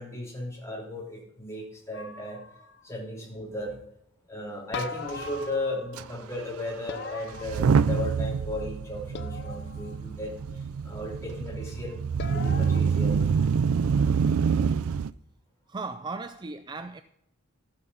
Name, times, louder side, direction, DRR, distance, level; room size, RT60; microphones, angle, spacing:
voice 1, 0.0-2.4 2.8-3.8 4.3-12.0 12.3-13.2, left 1 dB, 15° left, 3.4 m, -36 dB
sound 1, 1.9-2.9 4.7-6.1 6.9-8.2 9.1-10.0 12.2-12.8, left 4 dB, 50° left, 0.7 m, -40 dB
Motor vehicle (road) / Engine starting / Accelerating revving vroom, 4.8-4.9 5.1-5.3 6.0-6.1 7.3-15.1, right 6 dB, 80° right, 0.4 m, -26 dB
voice 2, 15.7-17.0, right 3 dB, 20° right, 0.4 m, -36 dB
13.0 x 8.8 x 5.5 m
head